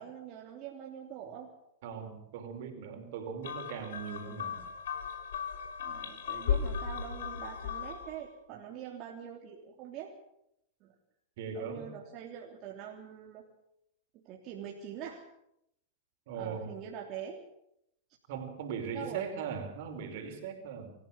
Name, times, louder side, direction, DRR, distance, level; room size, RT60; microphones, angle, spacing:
voice 1, 0.0-1.5 5.8-10.1 10.8-10.9 11.5-13.4 14.1-15.3 16.3-17.4 18.9-19.2, right 9 dB, 45° right, 0 dB, 3.3 m, -44 dB
voice 2, 1.8-4.6 11.4-11.9 16.3-16.7 18.3-20.9, right 6 dB, 65° right, 5 dB, 5.2 m, -39 dB
sound 1, 3.4-8.2, left 7 dB, 75° left, 3.5 m, -36 dB
25.5 x 15.0 x 7.5 m, 0.78 s
hypercardioid pair, 110°, 0 cm